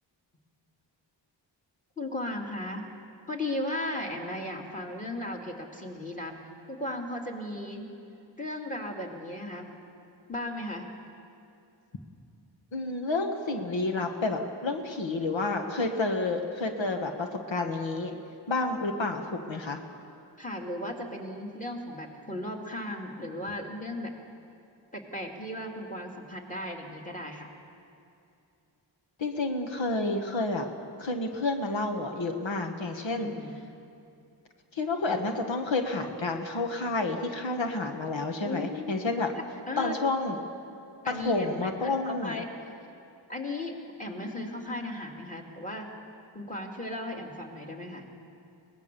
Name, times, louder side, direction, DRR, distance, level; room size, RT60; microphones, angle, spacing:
voice 1, 2.0-2.8 3.3-6.3 6.7-7.9 8.4-9.7 10.3-10.9 20.4-24.1 24.9-27.5 33.1-33.6 38.4-40.0 41.0-42.5 43.3-43.7 44.0-45.9 46.3-48.1, left 1 dB, 15° left, 1 dB, 2.7 m, -36 dB
voice 2, 12.7-18.1 18.5-19.8 29.2-30.6 31.0-33.3 34.7-39.3 39.8-40.4 41.1-42.4, left 3 dB, 85° left, 4 dB, 1.5 m, -30 dB
23.0 x 19.0 x 6.9 m, 2.7 s
wide cardioid pair, 80°, 44 cm